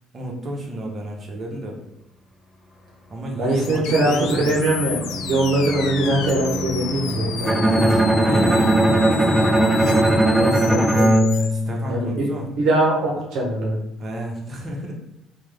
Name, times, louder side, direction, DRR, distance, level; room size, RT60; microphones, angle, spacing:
voice 1, 0.1-1.8 3.1-4.6 8.1-9.6 11.4-12.5 14.0-14.9, right 1 dB, 35° right, -1 dB, 0.9 m, -32 dB
sound 1, 2.8-10.1, equal, 20° left, 1.3 m, -31 dB
voice 2, 3.3-8.1 10.3-11.1 11.9-13.8, right 1 dB, 70° right, -2 dB, 0.7 m, -22 dB
sound 2, 3.5-11.5, left 7 dB, 70° left, 0.3 m, -33 dB
Bowed string instrument, 7.5-12.4, right 1 dB, 5° right, 0.3 m, -18 dB
3.1 x 2.2 x 3.3 m, 0.88 s
hypercardioid pair, 60°, 0 cm